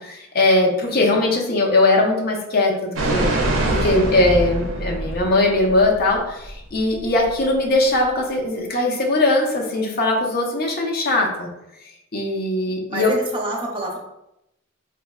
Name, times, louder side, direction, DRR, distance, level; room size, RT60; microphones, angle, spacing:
voice 1, 0.0-3.3 3.7-11.5 12.1-13.1, left 2 dB, 50° left, 0 dB, 0.5 m, -20 dB
voice 2, 0.9-1.3 12.9-14.0, right 1 dB, 25° right, -2 dB, 0.5 m, -28 dB
sound 1, 3.0-5.9 6.1-6.2, right 1 dB, 75° right, 0.5 m, -23 dB
3.7 x 2.1 x 2.2 m, 0.86 s
head